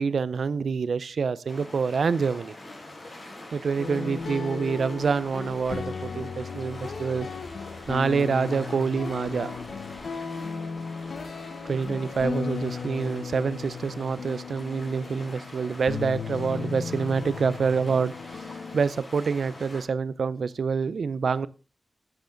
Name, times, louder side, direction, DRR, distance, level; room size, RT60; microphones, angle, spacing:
voice 1, 0.0-2.5 3.5-7.3 7.9-9.5 11.7-18.4 18.7-21.5, right 5 dB, 80° right, 0.5 m, -27 dB
sound 1, 1.5-19.8, left 1 dB, 40° left, 5.3 m, -44 dB
sound 2, 3.8-18.8, left 5 dB, 80° left, 1.2 m, -36 dB
11.0 x 9.2 x 3.8 m
wide cardioid pair, 95°, 0 cm